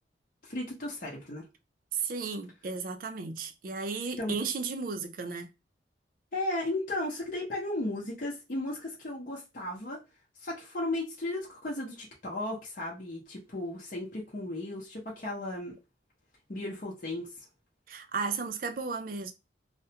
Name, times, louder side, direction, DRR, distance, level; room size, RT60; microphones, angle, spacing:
voice 1, 0.4-1.5 4.2-4.3 6.3-10.0 10.4-15.8 16.5-17.3, left 1 dB, 50° left, 0.7 m, -35 dB
voice 2, 1.9-5.5 17.9-19.3, right 4 dB, 50° right, 0.4 m, -34 dB
2.4 x 2.1 x 2.7 m
head